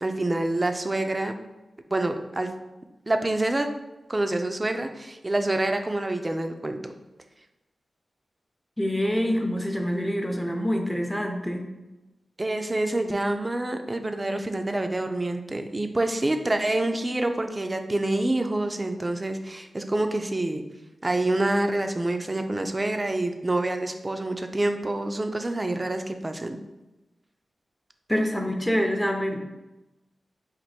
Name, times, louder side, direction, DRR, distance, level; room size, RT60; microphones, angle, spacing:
voice 1, 0.0-1.4 1.9-2.5 3.1-3.7 4.1-6.9 12.4-20.6 21.0-26.6, right 2 dB, 30° right, 6 dB, 0.5 m, -27 dB
voice 2, 8.8-11.7 28.1-29.4, equal, 5° left, 3 dB, 0.7 m, -26 dB
4.5 x 2.6 x 4.2 m, 1.0 s
cardioid pair, 55°, 0 cm